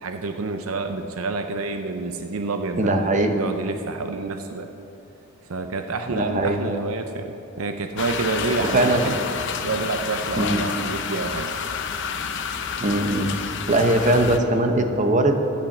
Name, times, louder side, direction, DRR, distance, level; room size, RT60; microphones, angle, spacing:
voice 1, 0.0-4.7 5.5-9.2 9.6-11.5, right 3 dB, 80° right, 7 dB, 0.7 m, -28 dB
voice 2, 2.8-3.4 6.1-6.7 8.7-9.0 10.4-10.7 12.8-15.4, right 1 dB, 35° right, 5 dB, 0.9 m, -21 dB
sound 1, 8.0-14.4, left 6 dB, 60° left, 0.7 m, -29 dB
11.5 x 8.7 x 7.2 m, 2.9 s
head